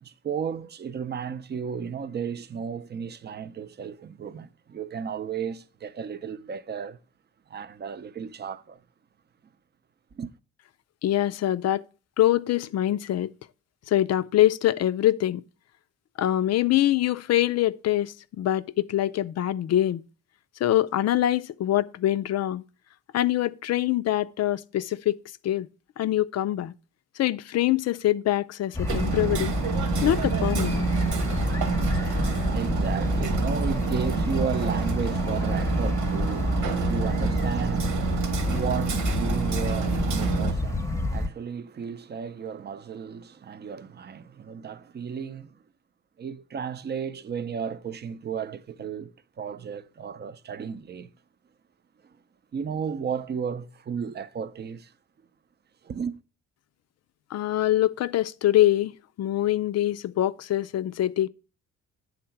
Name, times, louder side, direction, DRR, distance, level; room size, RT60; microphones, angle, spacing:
voice 1, 0.0-7.0 7.5-8.8 10.1-10.3 32.1-45.6 46.2-51.1 52.5-54.9 55.8-56.2, right 7 dB, 35° right, 0.6 m, -34 dB
voice 2, 11.0-11.8 12.2-13.3 13.9-15.4 16.2-20.0 20.6-22.6 23.1-25.2 25.4-25.7 26.0-26.7 27.2-29.5 30.0-30.9 57.3-61.3, left 13 dB, 55° left, 0.5 m, -24 dB
sound 1, 28.7-41.3, left 1 dB, 10° left, 0.8 m, -28 dB
Hammer, 28.9-40.5, right 8 dB, 85° right, 1.3 m, -29 dB
8.8 x 3.9 x 5.7 m
cardioid pair, 90°, 30 cm